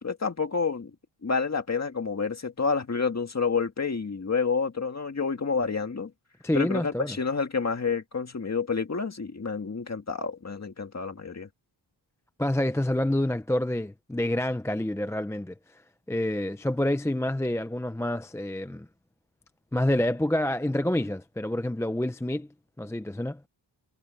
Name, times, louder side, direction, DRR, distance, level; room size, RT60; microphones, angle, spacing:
voice 1, 0.0-0.9 1.2-6.1 6.5-11.5, left 5 dB, 35° left, 2.1 m, -29 dB
voice 2, 6.4-7.2 12.4-15.5 16.1-18.9 19.7-22.5 22.8-23.4, left 1 dB, 5° left, 0.5 m, -27 dB
wide cardioid pair, 175°, 46 cm